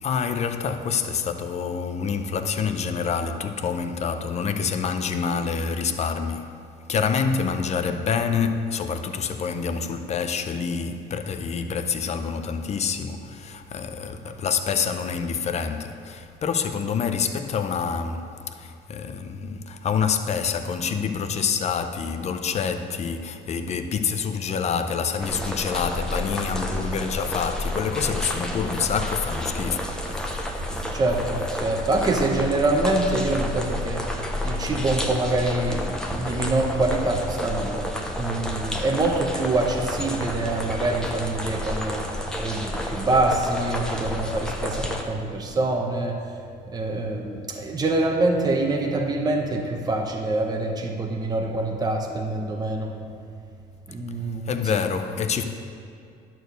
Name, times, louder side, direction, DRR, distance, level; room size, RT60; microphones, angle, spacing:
voice 1, 0.0-6.6 6.9-30.9 54.4-55.4, left 6 dB, 40° left, 0.7 m, -27 dB
sound 1, 25.2-45.0, left 1 dB, 5° left, 1.0 m, -30 dB
voice 2, 30.9-42.1 42.4-46.2 46.7-52.9 53.9-54.8, right 2 dB, 25° right, 1.0 m, -25 dB
11.0 x 4.6 x 6.7 m
cardioid pair, 110°, 17 cm